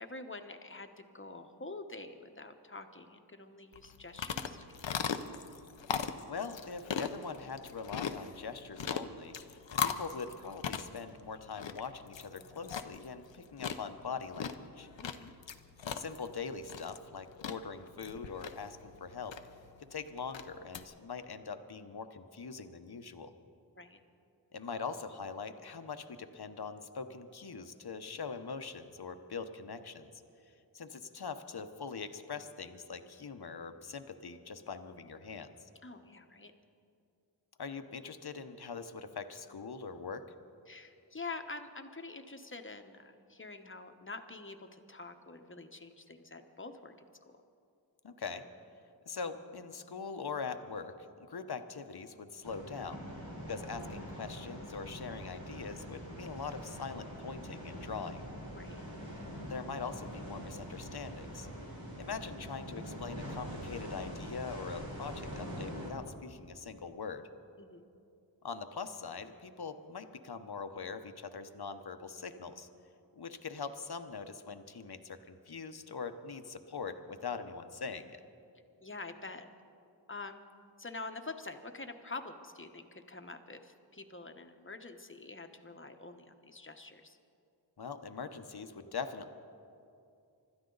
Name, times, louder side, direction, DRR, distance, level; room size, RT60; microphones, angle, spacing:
voice 1, 0.0-5.2 15.0-15.3 23.8-24.0 35.8-36.5 40.7-46.9 47.3-47.4 58.5-58.8 67.6-67.9 78.8-79.5 80.1-80.4 80.8-87.2, left 3 dB, 30° left, 6 dB, 1.1 m, -46 dB
sound 1, 3.7-20.8, left 7 dB, 90° left, 0.7 m, -40 dB
voice 2, 6.3-14.9 15.9-19.4 19.8-23.3 24.5-30.2 30.7-35.7 37.6-40.2 48.0-48.4 49.1-50.9 51.3-53.0 53.5-58.2 59.4-61.5 62.0-67.2 68.4-72.7 73.1-78.2 87.8-89.3, left 5 dB, 60° left, 9 dB, 1.0 m, -42 dB
sound 2, 52.4-65.9, equal, 90° right, 4.1 m, -44 dB
25.5 x 12.5 x 4.0 m, 2.5 s
wide cardioid pair, 45°, 43 cm